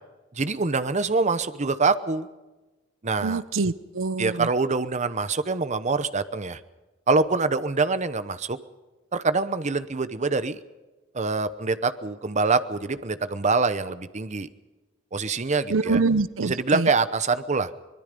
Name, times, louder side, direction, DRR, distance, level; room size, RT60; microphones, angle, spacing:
voice 1, 0.3-2.3 3.0-3.4 4.2-6.6 7.1-8.6 9.1-10.6 11.1-14.5 15.1-16.0 16.4-17.7, right 4 dB, 35° right, 13 dB, 0.9 m, -25 dB
voice 2, 3.2-4.5 15.7-16.9, right 3 dB, 90° right, 16 dB, 0.7 m, -25 dB
24.0 x 20.5 x 5.3 m, 1.2 s
head